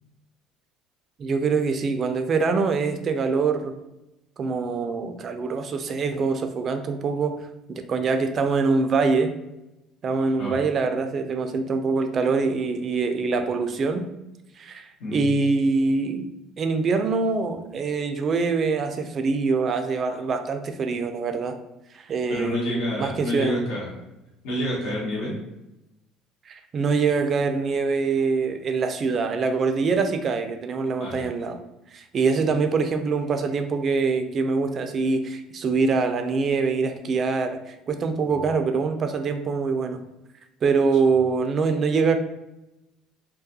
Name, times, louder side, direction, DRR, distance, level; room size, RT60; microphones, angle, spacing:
voice 1, 1.2-3.8 4.4-7.4 7.7-9.3 10.0-14.0 14.6-16.3 16.6-21.6 21.9-23.6 26.5-31.6 31.9-40.0 40.6-42.1, right 4 dB, 45° right, 7 dB, 0.3 m, -24 dB
voice 2, 22.3-24.0 24.4-25.4 31.0-31.3, left 1 dB, 80° left, -5 dB, 1.1 m, -28 dB
2.3 x 2.3 x 2.6 m, 0.93 s
supercardioid pair, 80°, 0 cm